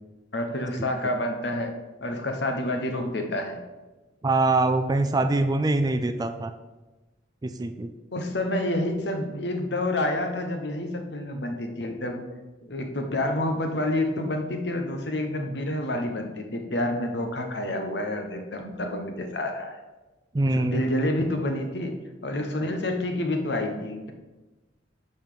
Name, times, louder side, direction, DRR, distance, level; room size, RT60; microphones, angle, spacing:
voice 1, 0.3-1.7 2.0-3.6 8.1-12.3 12.6-19.8 20.5-22.0 22.2-24.1, left 1 dB, 60° left, 5 dB, 1.0 m, -28 dB
voice 2, 4.2-6.5 7.4-7.9 20.3-20.8, right 2 dB, 20° right, 9 dB, 0.4 m, -24 dB
5.7 x 5.4 x 6.7 m, 1.1 s
head